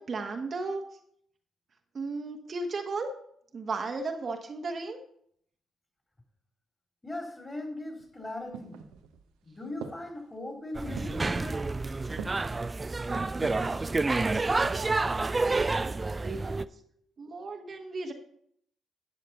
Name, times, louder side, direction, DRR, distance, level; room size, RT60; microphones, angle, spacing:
voice 1, 0.1-0.8 1.9-3.1 3.5-5.0 14.5-15.1 15.5-16.7 17.2-18.1, right 3 dB, 50° right, 4 dB, 1.1 m, -35 dB
voice 2, 7.0-8.8 9.4-11.7 16.5-16.9, left 2 dB, 25° left, 2 dB, 3.4 m, -39 dB
sound 1, 8.0-9.3 9.8-10.3 11.0-11.4 12.2-12.6 13.4-13.8 14.4-15.0 15.3-15.4, right 7 dB, 80° right, 0.7 m, -43 dB
sound 2, 10.7-16.7, right 3 dB, 30° right, 0.4 m, -29 dB
12.0 x 6.6 x 4.2 m, 0.67 s
hypercardioid pair, 45°, 0 cm